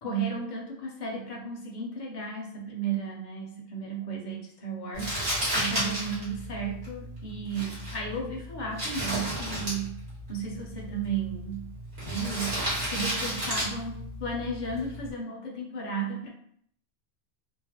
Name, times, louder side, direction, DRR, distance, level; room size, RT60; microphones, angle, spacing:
voice 1, 0.0-5.1 5.5-10.0 10.3-11.7 12.0-16.3, right 4 dB, 50° left, 0 dB, 0.7 m, -34 dB
Crumpling crinkling, 4.9-15.1, equal, 75° right, 1.6 m, -33 dB
3.0 x 2.1 x 2.8 m, 0.65 s
omnidirectional pair, 1.1 m